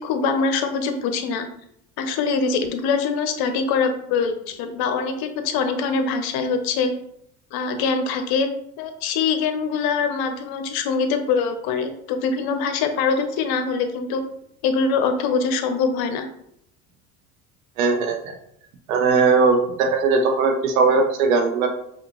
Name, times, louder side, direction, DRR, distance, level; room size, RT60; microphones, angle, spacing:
voice 1, 0.0-1.5 2.0-6.9 7.5-8.5 8.8-14.2 14.6-16.3, left 5 dB, 65° left, 7 dB, 0.8 m, -23 dB
voice 2, 17.8-18.3 18.9-21.7, right 4 dB, 90° right, 3 dB, 0.8 m, -19 dB
5.1 x 2.5 x 3.0 m, 0.73 s
hypercardioid pair, 75°, 40 cm